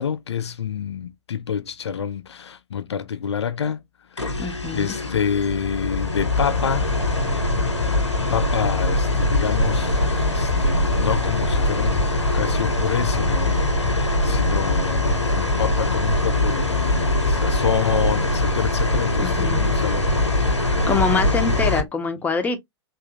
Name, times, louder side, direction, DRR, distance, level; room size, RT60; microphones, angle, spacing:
voice 1, 0.0-3.8 4.1-6.9 7.9-8.0 8.3-12.0 12.3-21.0, left 8 dB, 70° left, 0.4 m, -28 dB
sound 1, 4.2-21.8, left 2 dB, 90° left, 0.8 m, -22 dB
voice 2, 4.4-5.0 19.2-19.7 20.9-22.6, left 4 dB, 10° left, 0.7 m, -24 dB
3.5 x 2.7 x 2.7 m
figure-of-eight pair, 100°, 15 cm